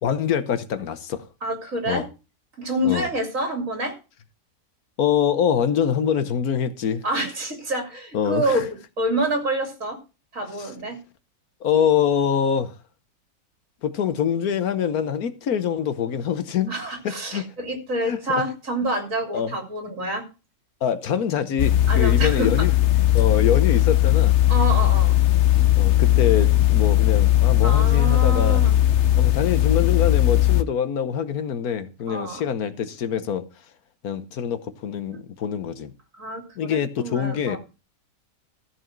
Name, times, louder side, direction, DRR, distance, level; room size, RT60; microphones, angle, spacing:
voice 1, 0.0-1.3 1.9-2.0 2.8-3.1 5.0-7.0 8.1-8.6 10.6-10.7 11.6-12.7 13.8-16.7 17.0-17.5 18.0-18.2 19.3-19.5 20.0-20.1 20.8-22.7 23.1-24.3 25.8-28.6 29.2-33.4 34.0-35.9 36.6-37.6, left 8 dB, 75° left, 1.4 m, -24 dB
voice 2, 1.4-2.1 2.6-3.9 7.0-8.7 9.0-10.0 10.3-11.0 16.7-20.2 21.9-22.5 24.5-25.2 27.6-28.8 32.1-32.5 35.1-35.2 36.2-37.6, right 1 dB, 60° right, 3.4 m, -27 dB
sound 1, 21.6-30.6, left 13 dB, 55° left, 0.9 m, -18 dB
14.0 x 4.8 x 7.4 m
omnidirectional pair, 1.6 m